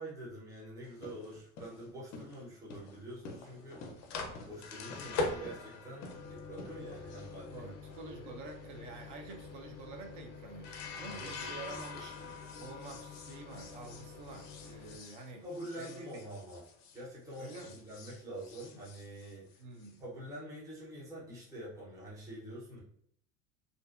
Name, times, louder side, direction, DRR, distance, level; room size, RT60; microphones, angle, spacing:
voice 1, 0.0-4.0 4.5-8.3 11.0-11.8 12.2-12.3 15.4-16.6 16.9-19.5 20.0-22.8, right 1 dB, 10° right, -6 dB, 0.6 m, -46 dB
sound 1, 0.8-17.0 17.3-19.9, left 3 dB, 45° left, 0.5 m, -44 dB
voice 2, 7.5-12.2 12.6-15.4 15.8-16.2 17.4-17.8 18.6-18.7 19.6-20.0, right 3 dB, 50° right, 3 dB, 0.6 m, -48 dB
2.6 x 2.1 x 2.3 m, 0.65 s
cardioid pair, 150°, 37 cm